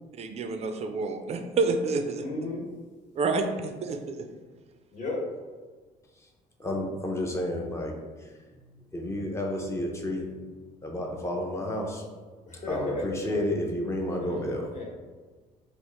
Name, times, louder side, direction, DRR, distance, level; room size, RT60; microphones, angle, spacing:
voice 1, 0.2-2.3 3.2-4.3, right 3 dB, 40° right, 6 dB, 0.4 m, -28 dB
voice 2, 2.2-2.6 4.9-5.2 12.5-13.0 14.2-14.4 14.7-14.8, left 2 dB, 45° left, -3 dB, 1.1 m, -33 dB
voice 3, 6.6-7.9 8.2-8.3 8.9-10.3 10.8-12.0 12.7-14.7, left 1 dB, 15° left, 1 dB, 0.5 m, -31 dB
3.4 x 2.4 x 3.0 m, 1.4 s
cardioid pair, 110°, 17 cm